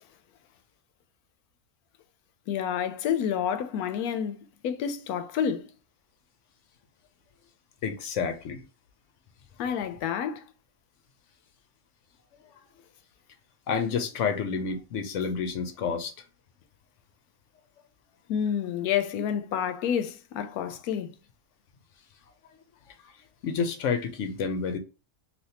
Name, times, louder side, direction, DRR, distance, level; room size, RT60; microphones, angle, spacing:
voice 1, 2.5-5.7 9.6-10.4 18.3-21.1, left 8 dB, 85° left, 1.1 m, -29 dB
voice 2, 7.8-8.6 13.7-16.1 23.4-24.8, left 6 dB, 65° left, 0.9 m, -29 dB
3.4 x 2.6 x 2.8 m
omnidirectional pair, 1.5 m